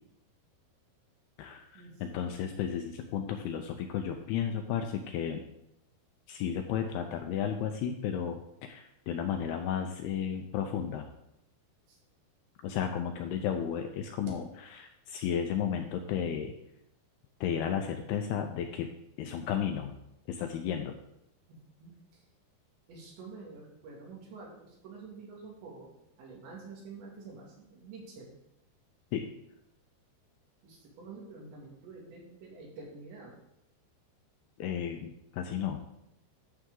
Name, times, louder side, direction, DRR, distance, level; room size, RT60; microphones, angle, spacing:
voice 1, 1.4-5.4 6.3-11.1 12.6-14.4 14.8-16.5 17.4-18.9 19.2-19.9 20.3-21.0 29.1-29.3 34.6-35.8, left 8 dB, 80° left, 5 dB, 2.3 m, -33 dB
voice 2, 21.5-21.9 22.9-25.9 26.2-28.3 30.6-33.3, right 4 dB, 80° right, -2 dB, 4.6 m, -48 dB
11.5 x 7.4 x 3.8 m, 0.82 s
omnidirectional pair, 5.1 m